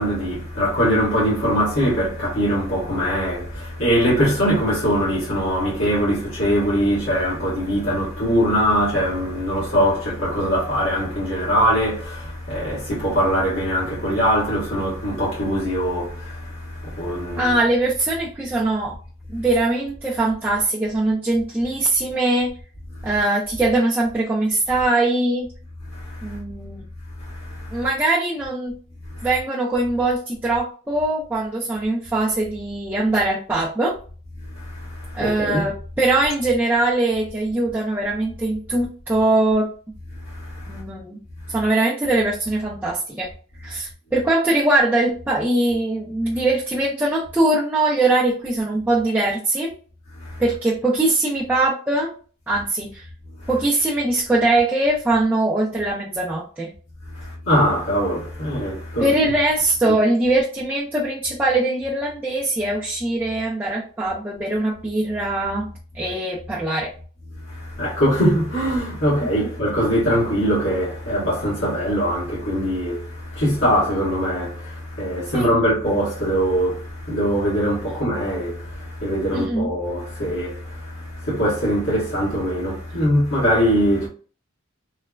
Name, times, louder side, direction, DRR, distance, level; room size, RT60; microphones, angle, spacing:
voice 1, 0.0-17.5 25.9-26.4 27.2-27.9 29.1-29.3 34.5-35.7 40.3-40.8 50.2-50.4 57.1-59.1 59.9-60.0 67.5-84.1, equal, 70° left, 1.3 m, -22 dB
voice 2, 17.4-18.9 19.3-22.5 23.0-25.5 26.2-26.8 27.7-28.7 29.2-34.0 35.1-39.7 40.7-41.2 41.5-43.3 43.6-49.7 50.4-52.1 52.5-53.1 53.5-56.7 59.0-65.7 65.9-66.9 75.3-75.6 79.3-79.7, right 2 dB, 10° right, 0.3 m, -21 dB
3.1 x 2.0 x 2.2 m
head